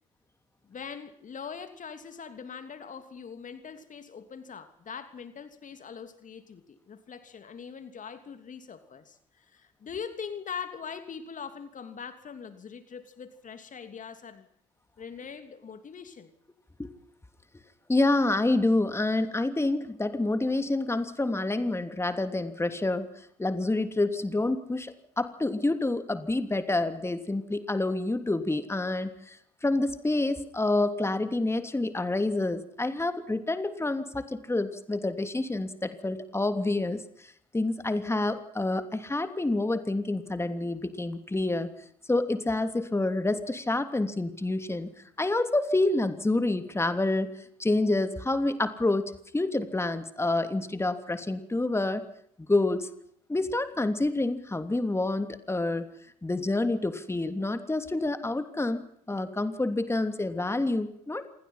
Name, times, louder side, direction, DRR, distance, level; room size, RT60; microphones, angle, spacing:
voice 1, 0.6-14.5 15.0-16.3, left 6 dB, 40° left, 9 dB, 2.9 m, -42 dB
voice 2, 17.9-29.4 29.6-41.7 42.1-44.9 45.2-47.3 47.6-52.1 52.5-52.9 53.3-55.9 56.2-58.8 59.1-61.3, left 2 dB, 10° left, 9 dB, 3.0 m, -28 dB
28.0 x 23.5 x 5.8 m, 0.67 s
figure-of-eight pair, 50°, 21 cm